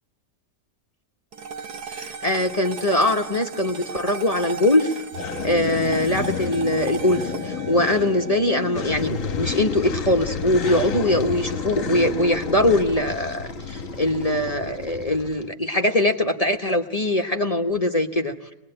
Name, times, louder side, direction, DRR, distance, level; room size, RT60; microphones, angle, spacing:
sound 1, 1.3-9.8, right 5 dB, 65° right, 1.7 m, -37 dB
voice 1, 1.9-5.0 5.4-18.5, left 1 dB, 25° left, 4 dB, 1.1 m, -22 dB
sound 2, 5.1-15.5, left 5 dB, 50° left, 1.5 m, -30 dB
25.0 x 20.5 x 8.9 m, 0.92 s
omnidirectional pair, 1.8 m